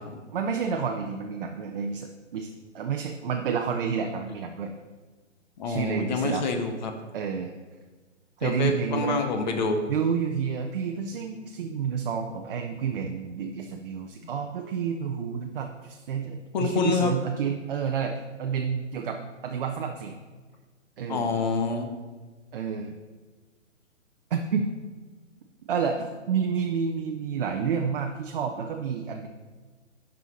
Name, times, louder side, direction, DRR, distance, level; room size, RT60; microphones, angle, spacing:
voice 1, 0.3-4.7 5.7-6.4 7.1-7.5 8.4-9.2 9.9-20.1 21.0-21.3 22.5-22.9 24.3-24.6 25.7-29.3, right 6 dB, 45° right, 3 dB, 0.7 m, -29 dB
voice 2, 5.6-6.9 8.4-9.8 14.2-14.3 16.5-17.1 21.1-21.9, left 4 dB, 35° left, 5 dB, 0.9 m, -27 dB
9.0 x 5.6 x 4.1 m, 1.4 s
hypercardioid pair, 145°, 38 cm